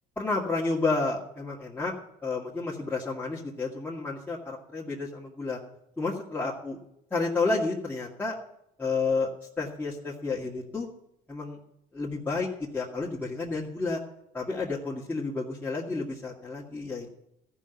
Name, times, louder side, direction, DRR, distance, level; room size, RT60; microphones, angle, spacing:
voice 1, 0.2-1.9 2.2-5.6 6.0-6.8 7.1-8.4 8.8-9.3 9.6-10.9 11.3-11.6 11.9-14.0 14.3-17.1, left 3 dB, 10° left, -6 dB, 2.2 m, -30 dB
14.5 x 5.6 x 9.2 m, 0.80 s
cardioid pair, 110°, 17 cm